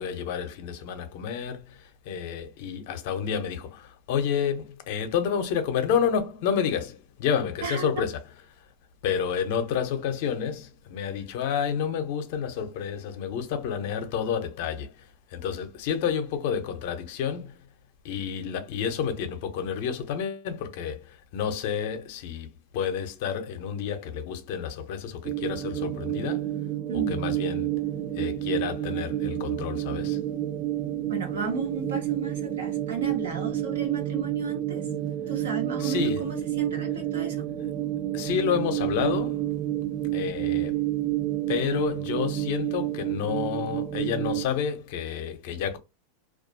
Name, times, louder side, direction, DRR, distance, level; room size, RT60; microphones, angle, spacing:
voice 1, 0.0-8.2 8.6-8.7 9.0-17.6 18.0-26.5 27.1-27.7 28.1-30.2 35.8-36.3 38.1-39.5 40.1-40.8 41.5-45.8, left 7 dB, 65° left, 0.6 m, -30 dB
sound 1, 25.2-44.4, right 13 dB, 30° right, 0.3 m, -29 dB
voice 2, 26.9-27.3 31.1-34.8 35.3-37.4, right 4 dB, 85° right, 1.1 m, -33 dB
2.3 x 2.2 x 2.6 m
hypercardioid pair, 115°, 0 cm